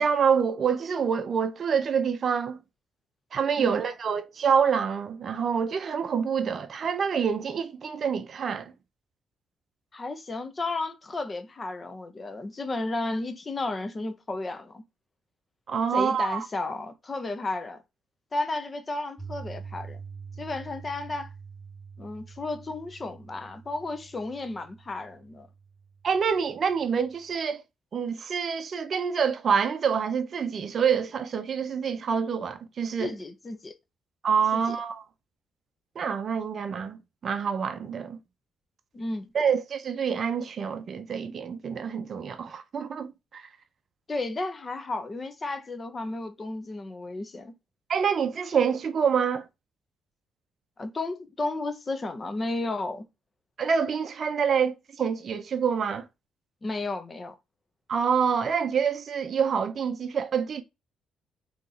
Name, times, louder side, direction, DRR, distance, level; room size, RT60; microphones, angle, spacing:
voice 1, 0.0-2.6 3.3-8.7 15.7-16.5 26.0-27.6 27.9-33.1 34.2-35.0 36.0-38.2 39.3-43.5 47.9-49.5 53.6-56.1 57.9-60.6, right 6 dB, 50° right, 0.5 m, -26 dB
voice 2, 9.9-14.8 15.9-17.8 18.3-20.0 20.4-21.3 22.0-25.5 33.0-33.7 34.5-34.8 38.9-39.3 44.1-47.5 50.8-53.1 56.6-57.3, left 2 dB, 30° left, 0.7 m, -33 dB
Piano, 19.2-27.3, right 5 dB, 20° right, 1.0 m, -45 dB
2.9 x 2.6 x 3.9 m
cardioid pair, 90°, 0 cm